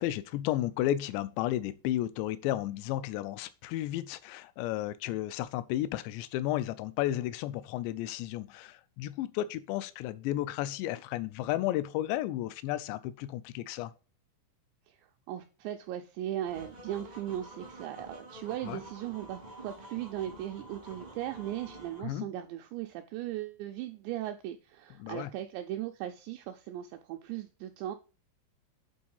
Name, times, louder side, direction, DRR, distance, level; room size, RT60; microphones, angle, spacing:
voice 1, 0.0-13.9 18.6-18.8 22.0-22.3 25.0-25.3, left 14 dB, 80° left, 2.6 m, -33 dB
voice 2, 15.3-28.0, right 12 dB, 85° right, 2.6 m, -38 dB
sound 1, 16.4-22.0, right 2 dB, 40° right, 0.5 m, -48 dB
8.6 x 4.0 x 5.3 m
omnidirectional pair, 5.5 m